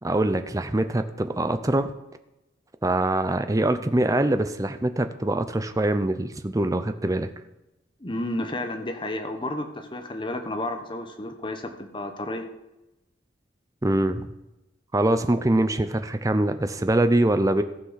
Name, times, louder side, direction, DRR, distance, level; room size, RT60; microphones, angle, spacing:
voice 1, 0.0-1.9 2.8-7.3 13.8-14.3 14.9-17.6, right 1 dB, 20° right, 9 dB, 0.6 m, -23 dB
voice 2, 8.0-12.5, left 1 dB, 25° left, 6 dB, 1.0 m, -31 dB
15.0 x 6.0 x 5.7 m, 0.97 s
head